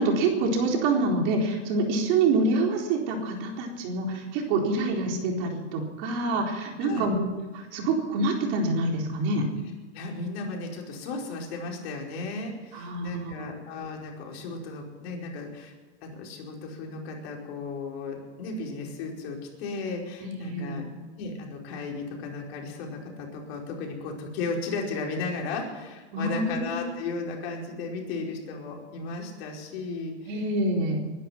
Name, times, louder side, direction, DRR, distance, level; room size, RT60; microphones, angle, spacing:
voice 1, 0.0-7.3 7.5-9.4 12.7-13.6 20.2-20.9 26.1-26.8 30.3-31.0, right 2 dB, 50° right, 1 dB, 4.1 m, -26 dB
voice 2, 9.9-15.7 16.0-20.8 21.2-30.4, left 3 dB, 60° left, 0 dB, 5.0 m, -35 dB
21.5 x 11.0 x 5.9 m, 1.3 s
supercardioid pair, 140°, 35 cm